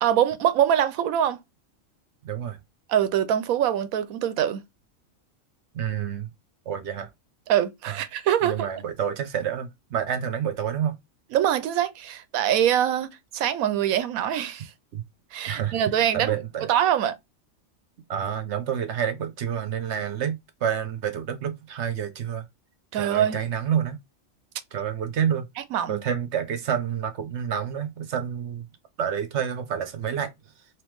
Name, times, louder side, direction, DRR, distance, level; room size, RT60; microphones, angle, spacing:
voice 1, 0.0-1.4 2.9-4.6 7.5-8.6 11.3-14.7 15.3-16.3 16.7-17.2 22.9-23.4 25.7-26.0, right 10 dB, 90° right, 1.1 m, -23 dB
voice 2, 2.2-2.6 5.7-6.3 6.7-7.1 7.9-8.0 8.4-11.0 14.9-15.0 15.5-15.8 16.1-16.7 18.1-22.4 22.9-24.0 24.7-25.5 25.9-28.6 29.0-30.3, right 8 dB, 60° right, 0.9 m, -28 dB
3.4 x 3.1 x 3.1 m
omnidirectional pair, 1.4 m